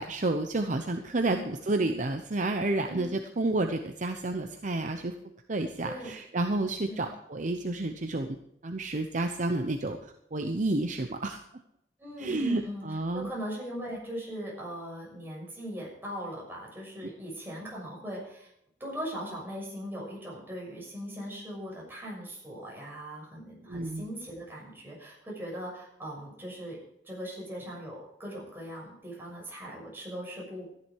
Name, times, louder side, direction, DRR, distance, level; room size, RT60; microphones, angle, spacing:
voice 1, 0.0-5.1 5.5-8.4 8.6-10.0 10.3-11.4 12.2-13.3 23.7-24.1, right 2 dB, 45° right, 5 dB, 0.9 m, -30 dB
voice 2, 12.0-18.5 18.8-26.8 27.0-30.7, equal, 15° right, -3 dB, 6.5 m, -39 dB
14.0 x 10.5 x 4.6 m, 0.74 s
head